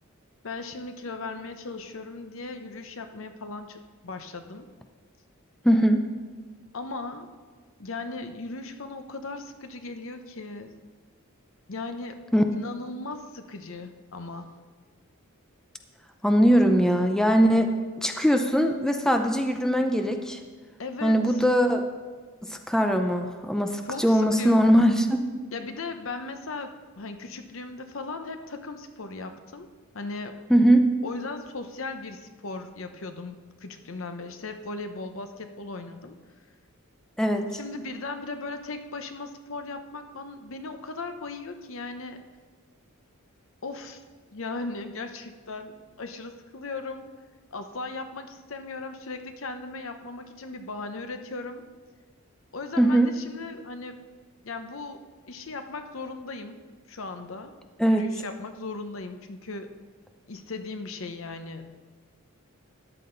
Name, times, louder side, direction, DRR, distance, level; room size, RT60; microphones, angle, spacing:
voice 1, 0.4-4.7 6.7-7.3 7.8-10.8 11.7-12.2 12.5-14.5 20.8-21.4 23.8-24.6 25.5-29.7 29.9-30.4 31.0-36.2 37.5-42.2 43.6-44.0 44.3-47.1 47.5-51.6 52.5-54.0 54.4-56.6 56.9-57.5 57.8-59.7 60.3-61.6, left 3 dB, 65° left, 8 dB, 0.8 m, -37 dB
voice 2, 5.6-6.0 12.3-12.4 16.2-20.4 21.0-21.8 22.4-25.2 30.5-30.8 37.2-37.6 52.8-53.1 57.8-58.1, equal, 5° left, 5 dB, 0.5 m, -21 dB
13.5 x 9.8 x 3.9 m, 1.5 s
head